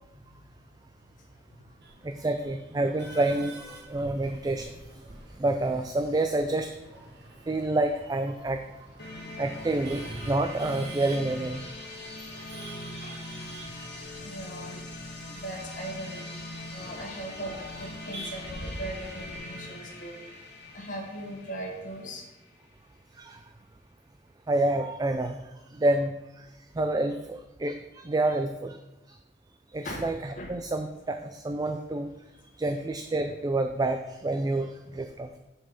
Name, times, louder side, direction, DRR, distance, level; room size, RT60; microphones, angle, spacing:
voice 1, 1.2-1.7 13.0-13.5 14.2-15.0 15.3-16.3 16.7-20.2 20.6-22.2 29.8-30.1 30.4-30.5, right 1 dB, 45° left, 0 dB, 1.5 m, -39 dB
Male speech man speaking / Laughter / Chatter, 1.8-19.4, right 1 dB, 60° right, 1.5 m, -47 dB
voice 2, 2.0-3.6 3.9-4.7 5.4-6.7 7.5-8.6 9.4-11.7 12.3-12.4 16.8-16.9 23.2-23.4 24.5-25.4 25.7-26.5 26.7-28.8 29.1-29.2 29.7-32.1 32.6-35.4, right 2 dB, 20° right, 6 dB, 0.4 m, -28 dB
sound 1, 9.0-22.7, left 1 dB, 60° left, 1.4 m, -42 dB
7.0 x 5.4 x 5.2 m, 1.0 s
head